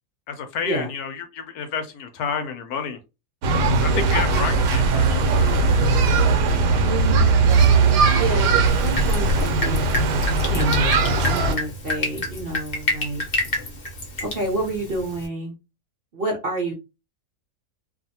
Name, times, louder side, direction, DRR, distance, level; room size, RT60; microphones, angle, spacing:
voice 1, 0.3-3.0 3.8-5.6, left 6 dB, 75° left, 7 dB, 1.0 m, -30 dB
sound 1, 3.4-11.5, right 3 dB, 80° right, 1.2 m, -19 dB
voice 2, 6.9-7.3 8.1-9.8 10.5-13.2 14.2-15.5 16.1-16.7, right 2 dB, 50° right, -2 dB, 0.7 m, -28 dB
Drip, 8.7-15.3, left 1 dB, 45° left, 0.8 m, -29 dB
2.7 x 2.5 x 2.7 m, 0.27 s
omnidirectional pair, 1.8 m